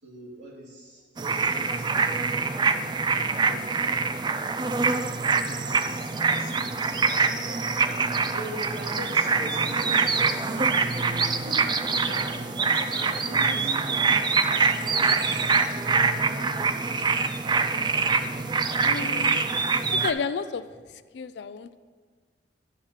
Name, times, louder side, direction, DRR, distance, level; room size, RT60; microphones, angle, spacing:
voice 1, 0.0-2.5 3.1-4.1 4.3-4.6 5.3-7.3 8.3-10.2 10.5-14.3 14.9-15.8, equal, 70° right, -5 dB, 2.7 m, -43 dB
sound 1, 1.2-20.1, right 4 dB, 25° right, 0.3 m, -24 dB
voice 2, 18.8-19.4 20.0-20.6 21.1-21.8, left 5 dB, 75° left, 14 dB, 0.4 m, -31 dB
11.0 x 5.7 x 4.8 m, 1.5 s
head